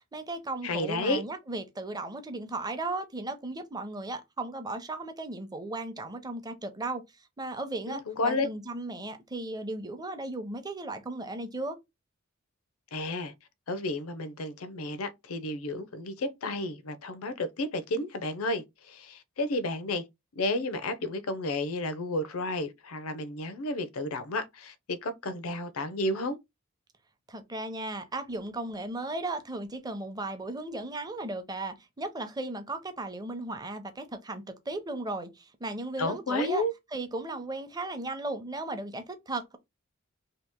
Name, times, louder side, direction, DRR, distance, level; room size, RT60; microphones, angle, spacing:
voice 1, 0.1-11.8 27.3-36.6 36.9-39.6, right 2 dB, 20° right, 0.6 m, -36 dB
voice 2, 0.6-1.2 7.9-8.5 12.9-13.3 13.7-20.1 20.4-26.4 36.0-36.7, left 2 dB, 90° left, 0.6 m, -32 dB
2.9 x 2.8 x 3.5 m
head